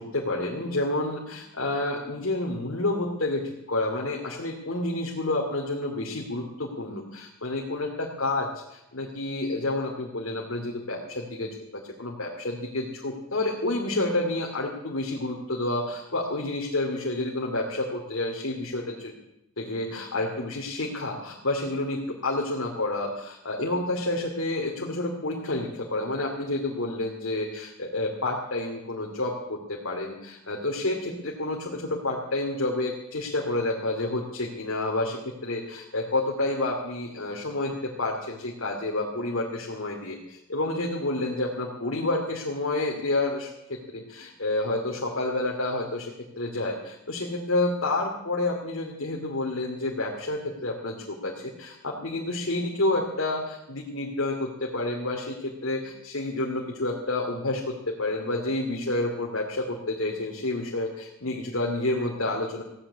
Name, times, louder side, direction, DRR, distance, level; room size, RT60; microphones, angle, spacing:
voice 1, 0.0-8.5 8.9-19.1 19.6-35.2 35.4-62.6, left 2 dB, 75° left, -1 dB, 2.6 m, -29 dB
16.5 x 9.8 x 8.5 m, 0.86 s
head